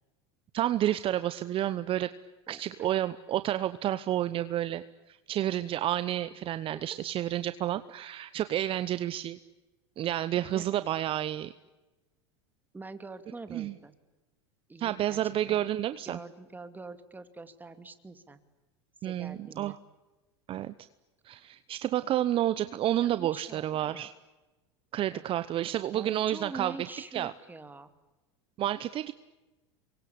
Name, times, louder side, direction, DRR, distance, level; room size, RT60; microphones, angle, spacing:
voice 1, 0.5-2.1 2.5-4.8 5.1-9.4 10.0-11.5 13.5-13.7 14.8-16.2 19.0-19.8 20.5-20.7 21.2-24.1 24.9-26.9 27.1-27.3 28.6-29.1, right 12 dB, 40° right, 13 dB, 1.0 m, -30 dB
voice 2, 2.5-2.9 6.7-6.9 10.4-10.7 12.7-13.9 14.7-15.2 15.5-15.6 16.0-18.4 19.0-19.8 23.0-24.1 25.1-25.2 25.9-27.9, right 3 dB, 10° right, 10 dB, 2.5 m, -45 dB
27.5 x 23.5 x 8.6 m, 1.1 s
hypercardioid pair, 100°, 14 cm